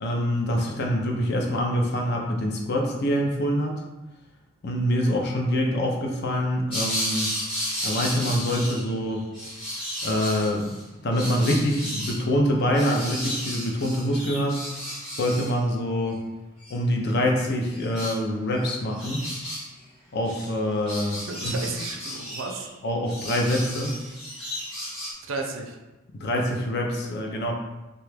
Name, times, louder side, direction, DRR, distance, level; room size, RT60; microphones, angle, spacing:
voice 1, 0.0-3.8 4.6-7.3 7.8-9.3 10.0-14.6 15.1-16.2 16.7-19.3 20.1-21.5 22.8-24.0 26.2-27.5, equal, 50° left, 1 dB, 0.5 m, -25 dB
sound 1, 6.7-8.9 9.2-10.8 11.1-12.2 12.7-15.5 16.6-16.7 17.7-18.2 18.6-18.7 18.9-19.7 20.2-20.5 20.9-22.7 23.0-25.1, equal, 25° left, 1.0 m, -33 dB
voice 2, 21.3-22.7 25.3-25.8, right 4 dB, 65° right, 2 dB, 0.4 m, -33 dB
2.8 x 2.3 x 3.3 m, 1.1 s
head